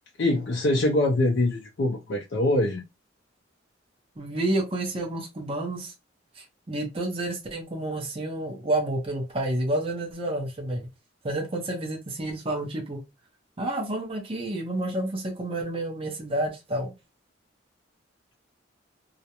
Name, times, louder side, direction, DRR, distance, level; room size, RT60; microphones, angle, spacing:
voice 1, 0.2-2.8, left 1 dB, 60° left, 0.4 m, -24 dB
voice 2, 4.2-5.9 6.4-10.8 11.2-13.0 13.6-16.9, right 1 dB, 30° right, 0.6 m, -29 dB
2.3 x 2.1 x 2.8 m
head